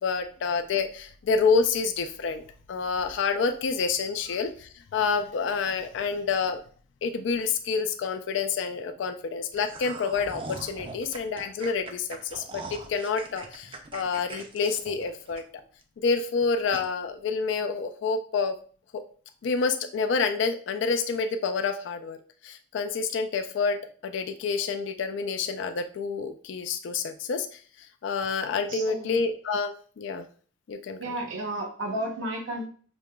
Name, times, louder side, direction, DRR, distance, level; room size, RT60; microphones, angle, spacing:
voice 1, 0.0-2.4 2.7-6.6 7.0-15.4 16.0-18.6 18.9-19.0 19.4-22.2 22.4-29.7 30.0-30.3 30.7-31.1, left 5 dB, 65° left, 7 dB, 0.3 m, -28 dB
sound 1, 9.5-15.8 16.2-16.3 16.7-16.9, right 3 dB, 25° right, 0.4 m, -41 dB
voice 2, 28.7-29.2 31.0-32.6, right 1 dB, 75° right, 0 dB, 0.7 m, -32 dB
5.1 x 2.8 x 2.2 m, 0.44 s
head